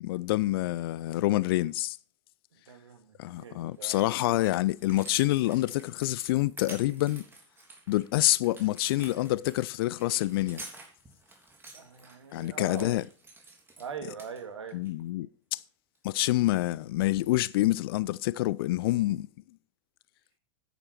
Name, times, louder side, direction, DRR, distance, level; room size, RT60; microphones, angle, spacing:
voice 1, 0.0-2.0 3.2-7.2 7.9-10.6 12.3-13.0 14.7-15.6 16.0-19.3, left 17 dB, 55° left, 0.4 m, -27 dB
voice 2, 2.5-4.0 11.7-13.0 13.8-14.8, right 6 dB, 75° right, 2.0 m, -42 dB
sound 1, 3.3-3.4 3.7-13.9 14.2-14.9 15.9-16.1, right 3 dB, 15° right, 3.3 m, -49 dB
9.9 x 9.1 x 4.4 m
figure-of-eight pair, 90°, 15 cm